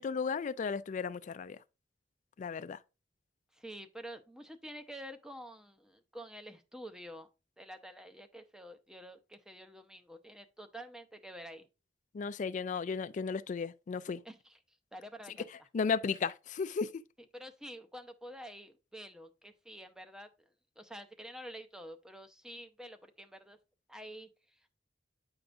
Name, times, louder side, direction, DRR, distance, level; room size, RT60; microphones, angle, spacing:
voice 1, 0.0-1.6 2.4-2.8 12.1-14.2 15.7-17.0, left 5 dB, 45° left, 0.3 m, -34 dB
voice 2, 3.5-7.3 7.6-11.7 14.2-15.5 17.2-20.3 20.8-23.6 23.9-24.7, equal, 5° right, 0.6 m, -48 dB
8.8 x 4.8 x 2.5 m
head